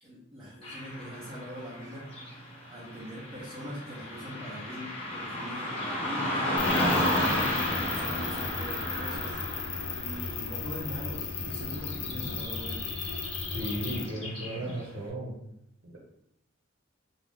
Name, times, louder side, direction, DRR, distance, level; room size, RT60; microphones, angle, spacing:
voice 1, 0.0-12.9 13.2-13.5, equal, 25° right, -10 dB, 0.7 m, -43 dB
Car passing by / Traffic noise roadway noise, 0.6-14.9, left 1 dB, 30° left, 0.9 m, -33 dB
sound 1, 6.6-14.0, left 5 dB, 70° left, 0.5 m, -36 dB
voice 2, 13.5-15.4 15.8-16.0, right 1 dB, 85° right, -4 dB, 0.8 m, -35 dB
3.0 x 2.4 x 3.5 m, 0.81 s
head